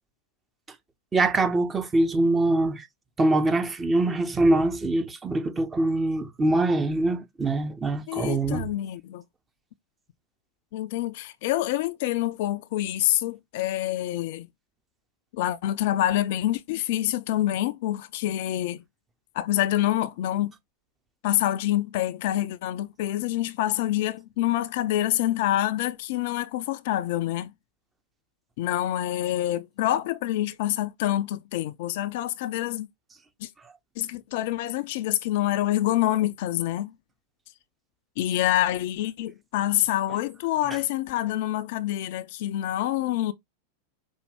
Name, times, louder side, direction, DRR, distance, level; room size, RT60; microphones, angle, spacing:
voice 1, 1.1-2.9 3.2-8.7, right 2 dB, 15° right, 0.6 m, -23 dB
voice 2, 8.1-9.2 10.7-14.5 15.3-18.8 19.3-20.5 21.2-27.5 28.6-32.9 33.4-33.5 34.0-36.9 38.2-43.3, left 14 dB, 50° left, 0.4 m, -26 dB
5.2 x 2.2 x 3.4 m
figure-of-eight pair, 90°, 0 cm